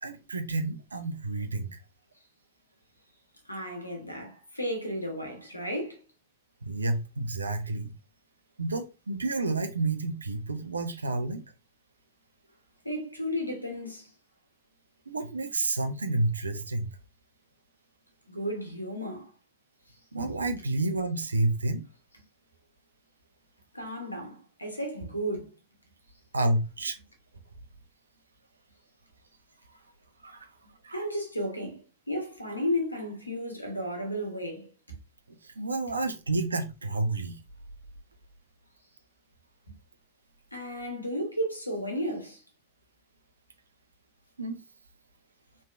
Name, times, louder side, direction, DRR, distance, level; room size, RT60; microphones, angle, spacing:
voice 1, 0.0-1.8 6.6-7.9 8.6-11.4 15.1-16.9 20.1-21.8 26.3-27.0 30.2-30.5 30.8-31.0 35.4-37.4 44.4-44.6, right 2 dB, 75° right, 0.4 m, -30 dB
voice 2, 3.4-6.0 12.8-14.1 18.3-19.3 23.7-25.5 30.9-35.0 40.5-42.4, equal, 85° left, 0.9 m, -33 dB
3.0 x 2.6 x 2.3 m
figure-of-eight pair, 90°, 0 cm